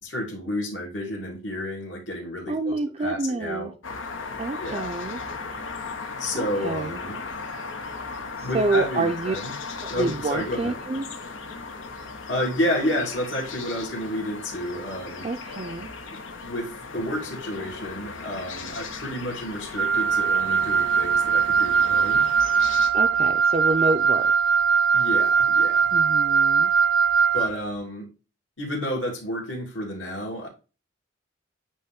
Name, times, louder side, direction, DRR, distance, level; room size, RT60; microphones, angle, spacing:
voice 1, 0.0-3.7 4.6-4.9 6.2-7.2 8.4-9.5 9.9-10.8 12.3-15.2 16.4-22.2 24.9-25.9 27.3-28.1 28.6-30.5, left 1 dB, 70° left, 2.5 m, -30 dB
voice 2, 2.5-3.7 4.4-5.2 6.4-7.0 8.4-9.4 9.8-11.1 15.2-15.9 22.9-24.3 25.9-26.7, right 3 dB, 30° right, 0.4 m, -28 dB
sound 1, 3.8-22.9, left 4 dB, 85° left, 1.0 m, -37 dB
Wind instrument woodwind instrument, 19.8-27.5, right 6 dB, 80° right, 0.6 m, -21 dB
8.8 x 3.0 x 3.5 m
head